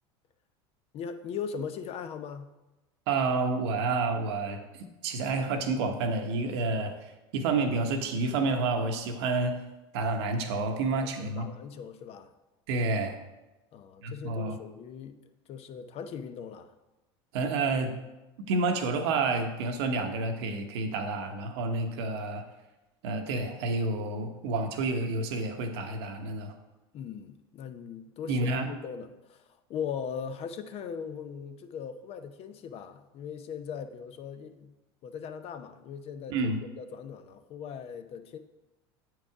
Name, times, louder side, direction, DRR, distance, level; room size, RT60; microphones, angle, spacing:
voice 1, 0.9-2.5 10.9-12.3 13.7-16.7 26.9-29.4 29.7-34.7 35.0-38.4, left 7 dB, 50° left, 9 dB, 0.7 m, -39 dB
voice 2, 3.1-9.6 9.9-11.5 12.7-13.2 14.0-14.6 17.3-17.9 18.5-22.4 23.0-26.5 28.3-28.7 36.3-36.6, right 3 dB, 75° right, 5 dB, 1.0 m, -29 dB
7.6 x 4.8 x 4.8 m, 1.0 s
hypercardioid pair, 95°, 14 cm